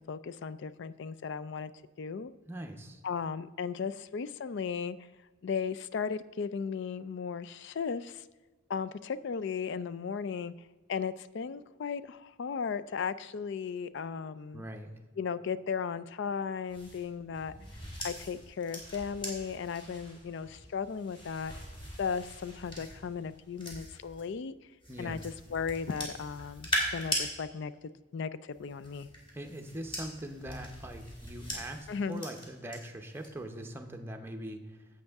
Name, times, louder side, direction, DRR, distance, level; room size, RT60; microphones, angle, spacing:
voice 1, 0.1-1.7 2.0-2.3 3.0-5.0 5.4-8.3 8.7-14.6 15.2-17.5 18.0-21.7 22.0-24.5 25.0-27.7 28.1-29.1 31.9-32.2, left 6 dB, 55° left, 14 dB, 0.4 m, -36 dB
voice 2, 2.4-3.0 14.5-14.9 24.9-25.3 29.3-34.9, right 1 dB, 10° right, 4 dB, 0.7 m, -42 dB
sound 1, 16.7-24.2 24.8-27.3 28.5-32.8 33.1-33.5, equal, 25° left, 2.3 m, -40 dB
10.5 x 7.7 x 3.5 m, 1.3 s
head